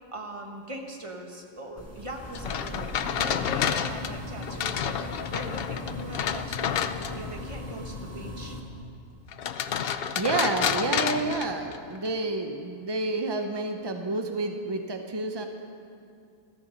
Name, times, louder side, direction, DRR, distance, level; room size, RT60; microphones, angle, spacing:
voice 1, 0.1-5.0 5.3-6.9 7.1-8.6, right 1 dB, 25° right, 2 dB, 1.3 m, -40 dB
sound 1, 1.8-8.6, left 2 dB, 10° left, 1.5 m, -39 dB
sound 2, 2.3-7.4 9.3-12.1, left 8 dB, 65° left, 0.6 m, -30 dB
voice 2, 10.2-15.5, right 3 dB, 40° right, 5 dB, 0.3 m, -29 dB
15.0 x 14.0 x 5.3 m, 2.5 s
omnidirectional pair, 1.5 m